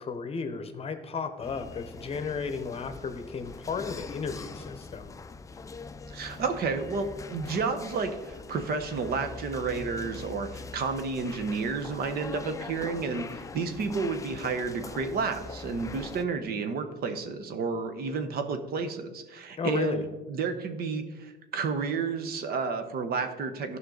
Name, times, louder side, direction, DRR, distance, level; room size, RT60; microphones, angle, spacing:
voice 1, 0.0-5.1 19.6-20.0, left 5 dB, 35° left, 8 dB, 0.9 m, -34 dB
sound 1, 1.4-16.2, left 4 dB, 20° left, 0.4 m, -43 dB
voice 2, 6.1-23.8, right 4 dB, 65° right, 8 dB, 1.0 m, -31 dB
14.0 x 5.6 x 3.9 m, 1.2 s
cardioid pair, 135°, 17 cm